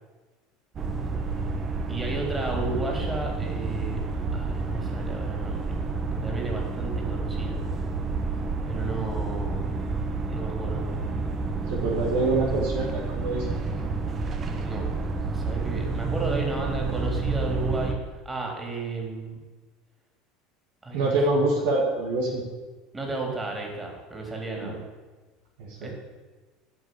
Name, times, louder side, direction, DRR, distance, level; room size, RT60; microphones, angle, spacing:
sound 1, 0.8-18.0, right 3 dB, 35° right, 1.3 m, -29 dB
voice 1, 1.9-4.0 4.3-5.6 6.2-7.6 8.6-9.8 10.3-11.1 14.6-14.8 15.3-18.0 18.3-19.4 20.8-21.1 21.6-21.7 22.9-24.8 25.8-25.9, right 3 dB, 15° right, 0 dB, 3.7 m, -33 dB
voice 2, 11.7-13.5 20.9-22.4 24.6-24.8 25.6-25.9, right 2 dB, 65° right, 0 dB, 1.9 m, -25 dB
9.8 x 6.8 x 8.5 m, 1.3 s
figure-of-eight pair, 70°, 0 cm